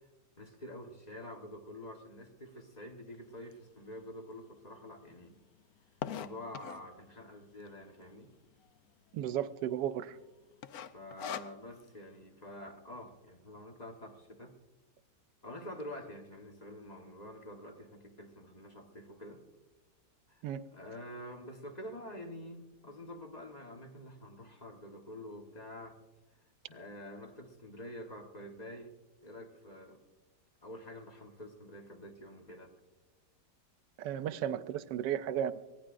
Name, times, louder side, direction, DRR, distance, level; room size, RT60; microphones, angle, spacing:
voice 1, 0.4-5.3 6.1-8.3 10.9-14.6 15.4-19.4 20.3-20.4 20.7-26.0 26.7-28.9 29.2-30.0 30.6-32.7, left 1 dB, 25° left, 2 dB, 1.2 m, -47 dB
sound 1, 3.5-3.6 4.2-4.3 4.5-4.6 4.8-7.0 7.6-8.0 8.4-8.5 8.7-8.8 9.3-9.7 10.0-10.2 10.6-11.9, left 9 dB, 70° left, 1.0 m, -41 dB
voice 2, 9.1-10.2 20.4-20.6 34.0-35.6, right 10 dB, 90° right, 13 dB, 1.2 m, -34 dB
24.0 x 17.5 x 2.5 m, 1.1 s
omnidirectional pair, 1.8 m